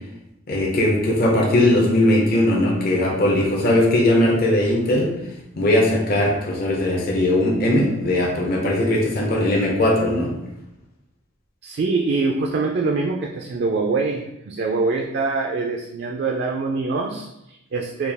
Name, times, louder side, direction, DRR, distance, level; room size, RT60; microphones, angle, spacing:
voice 1, 0.5-5.1 5.6-10.3, left 1 dB, 50° left, -2 dB, 0.7 m, -19 dB
voice 2, 11.6-18.1, right 3 dB, 55° right, 1 dB, 0.3 m, -24 dB
4.2 x 2.3 x 3.4 m, 0.87 s
head